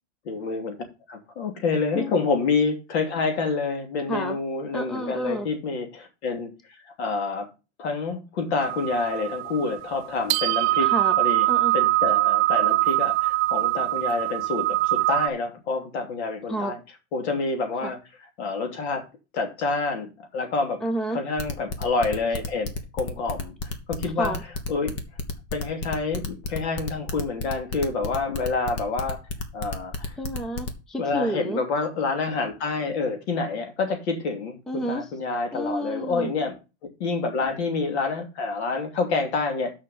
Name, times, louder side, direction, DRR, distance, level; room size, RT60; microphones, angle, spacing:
voice 1, 0.2-0.8 1.1-7.5 7.8-10.9 11.2-11.5 11.7-16.8 17.1-18.0 18.4-19.0 19.3-20.8 21.1-23.6 23.9-24.3 24.7-24.9 25.5-29.2 29.5-30.2 31.0-36.5 37.0-39.7, left 4 dB, 70° left, 3.0 m, -27 dB
voice 2, 4.7-5.5 10.8-11.2 11.5-11.7 16.5-16.7 17.8-17.9 20.8-21.2 24.2-24.4 30.2-31.6 34.7-35.1 35.5-36.3, right 1 dB, ahead, 0.4 m, -30 dB
sound 1, 8.6-15.3, right 18 dB, 65° right, 0.6 m, -23 dB
sound 2, 21.4-30.7, left 3 dB, 35° left, 1.4 m, -31 dB
6.6 x 5.6 x 7.2 m
supercardioid pair, 165°, 34 cm